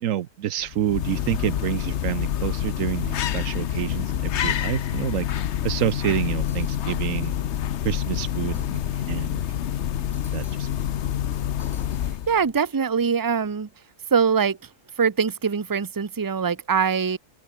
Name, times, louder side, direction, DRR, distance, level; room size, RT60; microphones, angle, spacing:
voice 1, 0.0-7.3 7.8-9.7 9.9-10.7, right 11 dB, 75° right, 1.2 m, -28 dB
sound 1, 0.6-12.5, left 10 dB, 60° left, 1.0 m, -27 dB
sound 2, 6.5-7.2 8.4-9.2 10.1-10.9 11.6-12.6, equal, 5° right, 3.9 m, -54 dB
voice 2, 12.3-13.7 14.1-14.6 15.0-17.2, right 6 dB, 25° right, 0.5 m, -22 dB
open air
omnidirectional pair, 1.4 m